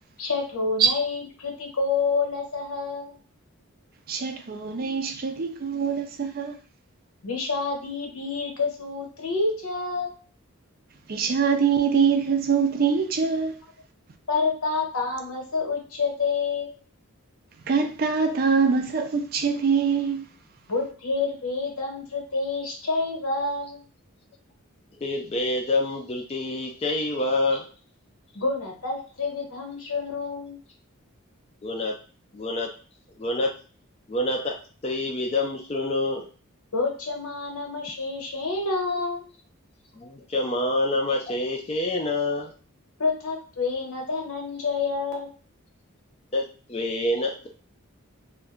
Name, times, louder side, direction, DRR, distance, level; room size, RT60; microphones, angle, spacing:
voice 1, 0.2-3.1 7.2-10.2 14.3-16.7 20.7-23.8 28.3-30.6 36.7-39.2 43.0-45.3, left 4 dB, 80° left, 1.0 m, -28 dB
voice 2, 4.1-6.5 11.1-13.5 17.7-20.2, right 6 dB, 40° right, 0.4 m, -23 dB
voice 3, 25.0-27.7 31.6-31.9 32.3-32.7 33.2-33.5 34.1-34.6 34.8-36.3 40.0-42.5 46.3-46.4 46.7-47.5, left 2 dB, 25° left, 0.3 m, -26 dB
2.5 x 2.1 x 3.6 m
head